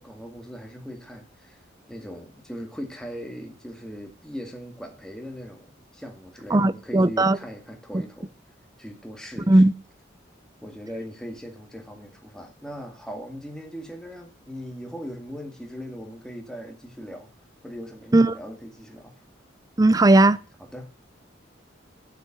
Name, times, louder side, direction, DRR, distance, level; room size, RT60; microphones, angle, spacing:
voice 1, 0.0-1.6 1.9-8.3 8.8-9.7 10.6-17.3 17.6-19.2 20.6-20.9, equal, 5° left, 2.1 m, -39 dB
voice 2, 6.5-7.4 9.5-9.7 18.1-18.3 19.8-20.4, right 2 dB, 20° right, 0.5 m, -17 dB
8.9 x 7.5 x 8.9 m
head